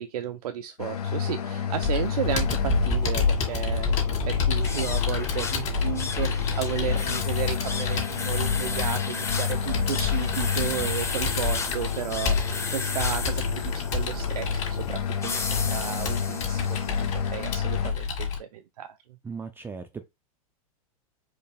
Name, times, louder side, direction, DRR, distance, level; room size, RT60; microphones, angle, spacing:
voice 1, 0.0-17.1 17.3-19.0, right 10 dB, 80° right, 0.5 m, -34 dB
sound 1, 0.8-17.9, left 7 dB, 85° left, 1.0 m, -31 dB
Computer keyboard, 1.8-18.4, left 5 dB, 35° left, 1.9 m, -29 dB
sound 2, 4.6-17.1, left 4 dB, 15° left, 0.8 m, -35 dB
voice 2, 19.2-20.1, right 5 dB, 10° right, 0.4 m, -37 dB
4.7 x 3.2 x 3.4 m
hypercardioid pair, 120°, 19 cm